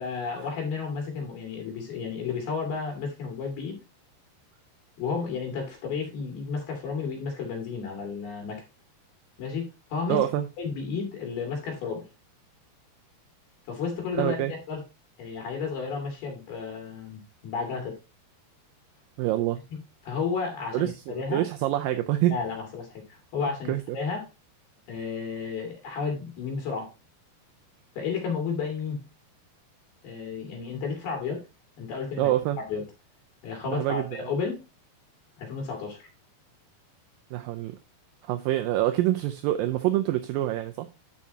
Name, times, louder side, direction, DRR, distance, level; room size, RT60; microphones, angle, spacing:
voice 1, 0.0-3.8 5.0-8.6 9.4-10.2 10.6-12.0 13.7-14.8 15.2-18.0 20.0-21.4 22.3-24.3 24.9-26.9 28.0-29.0 30.0-31.4 31.8-32.3 32.7-32.8 33.4-34.6 35.4-36.1, left 5 dB, 70° left, 4.1 m, -32 dB
voice 2, 10.1-10.5 14.2-14.5 19.2-19.6 20.7-22.3 23.7-23.8 32.2-32.6 33.7-34.1 37.3-37.7 38.2-40.9, right 14 dB, 85° right, 2.0 m, -26 dB
12.0 x 5.6 x 2.8 m
omnidirectional pair, 4.6 m